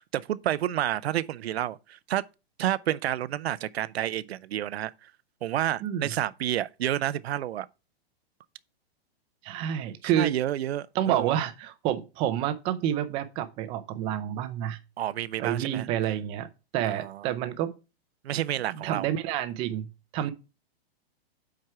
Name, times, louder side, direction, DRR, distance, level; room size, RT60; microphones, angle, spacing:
voice 1, 0.0-2.2 2.6-5.1 5.4-7.7 10.0-11.4 15.0-15.9 16.8-17.3 18.2-19.1 20.2-20.3, right 12 dB, 80° right, 0.6 m, -30 dB
voice 2, 5.8-6.1 9.4-10.3 10.9-14.8 15.4-16.5 16.7-17.7 18.8-19.9 20.1-20.3, right 11 dB, 15° right, 0.5 m, -28 dB
7.6 x 4.7 x 4.6 m
hypercardioid pair, 160°, 31 cm